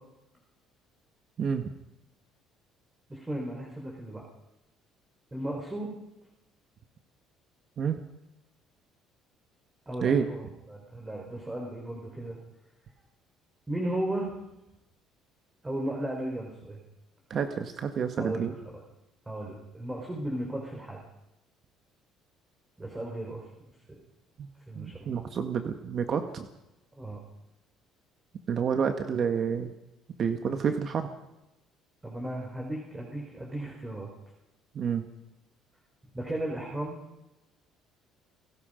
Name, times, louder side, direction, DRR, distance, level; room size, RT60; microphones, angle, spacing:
voice 1, 1.4-1.7 7.8-8.0 10.0-10.2 17.3-18.5 24.4-24.5 24.7-26.5 28.5-29.7 30.2-31.1 34.7-35.0, right 7 dB, 40° right, 6 dB, 1.6 m, -29 dB
voice 2, 3.1-4.2 5.3-5.9 9.9-10.4 10.7-12.4 13.7-14.3 15.6-16.8 18.1-18.8 19.3-21.0 22.8-23.5 23.9-24.0 24.7-25.1 27.0-27.2 32.0-34.1 36.1-37.0, right 1 dB, 10° right, -1 dB, 4.8 m, -35 dB
29.5 x 17.5 x 5.3 m, 0.92 s
cardioid pair, 140°, 0 cm